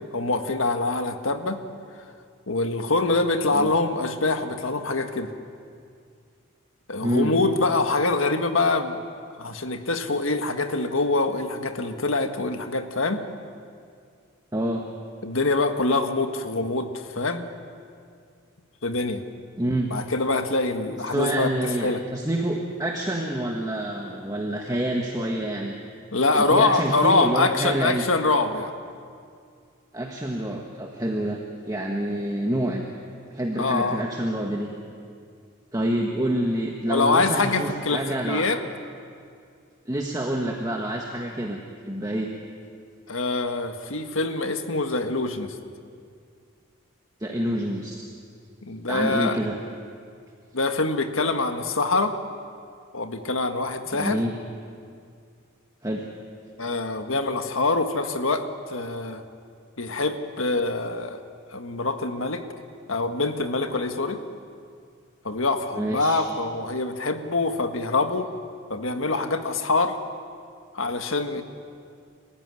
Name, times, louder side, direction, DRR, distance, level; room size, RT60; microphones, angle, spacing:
voice 1, 0.1-1.6 2.5-5.3 6.9-9.0 9.4-13.2 15.2-17.5 18.8-19.2 19.9-21.5 21.8-22.0 26.1-28.7 33.6-34.0 36.9-38.6 43.1-45.5 48.6-49.4 50.5-52.1 52.9-54.2 56.6-59.2 59.8-61.2 61.5-62.4 62.9-64.2 65.2-68.3 68.7-70.0 70.7-71.4, left 3 dB, 80° left, 7 dB, 1.7 m, -24 dB
voice 2, 7.0-7.3 14.5-14.8 19.6-19.9 21.1-25.7 26.3-28.1 29.9-32.8 33.3-34.7 35.7-38.5 39.9-41.6 41.9-42.3 47.2-48.1 48.9-49.6 53.9-54.3 55.8-56.1 65.8-66.2, right 1 dB, 15° right, 1 dB, 1.5 m, -27 dB
27.0 x 15.5 x 9.7 m, 2.3 s
head